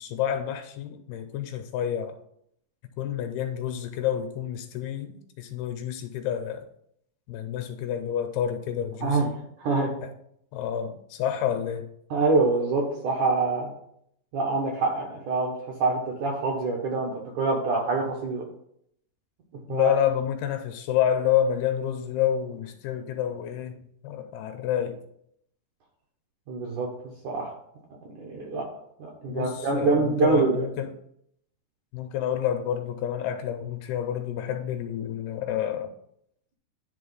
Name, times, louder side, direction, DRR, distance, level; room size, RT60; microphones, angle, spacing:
voice 1, 0.0-2.1 3.0-6.6 7.3-9.4 10.0-10.1 10.5-11.9 19.7-25.0 29.3-30.9 31.9-35.9, left 9 dB, 85° left, 7 dB, 2.5 m, -29 dB
voice 2, 9.6-9.9 12.1-13.7 14.3-18.4 19.7-20.0 26.5-26.9 27.2-27.5 28.1-28.7 29.0-30.7, right 3 dB, 70° right, -1 dB, 1.9 m, -25 dB
10.5 x 3.6 x 5.4 m, 0.71 s
omnidirectional pair, 4.8 m